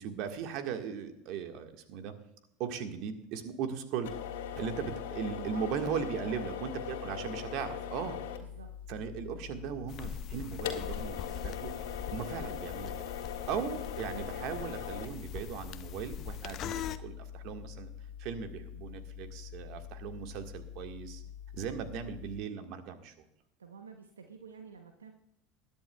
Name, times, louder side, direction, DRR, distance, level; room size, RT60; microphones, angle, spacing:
voice 1, 0.0-2.1 2.6-4.1 4.6-8.2 8.9-12.9 13.5-17.9 18.2-21.2 21.5-23.1, right 7 dB, 55° right, 6 dB, 1.6 m, -38 dB
sound 1, 4.0-22.4, left 9 dB, 70° left, 1.7 m, -42 dB
voice 2, 6.2-6.7 8.4-8.7 23.6-25.1, right 5 dB, 85° right, 5 dB, 0.9 m, -49 dB
sound 2, 9.9-17.0, left 9 dB, 45° left, 0.7 m, -42 dB
21.0 x 10.5 x 2.3 m, 0.77 s
hypercardioid pair, 80°, 0 cm